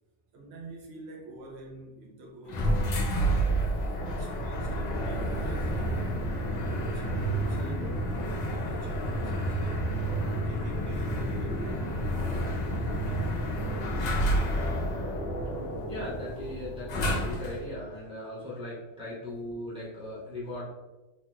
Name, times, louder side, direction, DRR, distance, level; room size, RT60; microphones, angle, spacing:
voice 1, 0.3-3.2 4.0-6.1 6.7-8.1 8.4-9.9 10.4-12.0, right 2 dB, 70° right, -1 dB, 0.9 m, -46 dB
sound 1, 2.5-17.7, right 1 dB, 65° left, 0.4 m, -30 dB
voice 2, 15.9-20.7, left 1 dB, 5° right, -7 dB, 0.7 m, -38 dB
3.1 x 2.7 x 2.2 m, 1.1 s
omnidirectional pair, 1.2 m